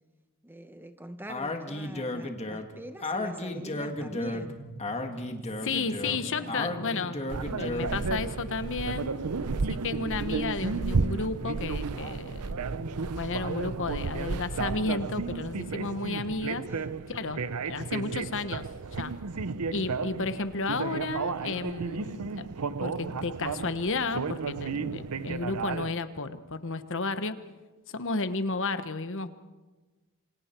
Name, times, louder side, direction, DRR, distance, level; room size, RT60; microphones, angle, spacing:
voice 1, 0.4-4.6 5.4-5.7 6.2-6.6 16.7-17.1, right 1 dB, 10° right, 9 dB, 1.0 m, -44 dB
Speech, 1.3-8.0, left 2 dB, 30° left, 1.8 m, -34 dB
sound 1, 3.9-16.1, right 2 dB, 60° right, 1.2 m, -45 dB
voice 2, 5.6-7.2 7.6-9.1 9.7-12.6 13.2-16.6 17.1-18.7 19.0-19.1 19.7-22.5 22.8-27.4 27.9-29.3, left 3 dB, 60° left, 11 dB, 1.2 m, -32 dB
sound 2, 7.3-25.9, right 4 dB, 85° right, 0.7 m, -33 dB
27.5 x 25.5 x 4.5 m, 1.2 s
head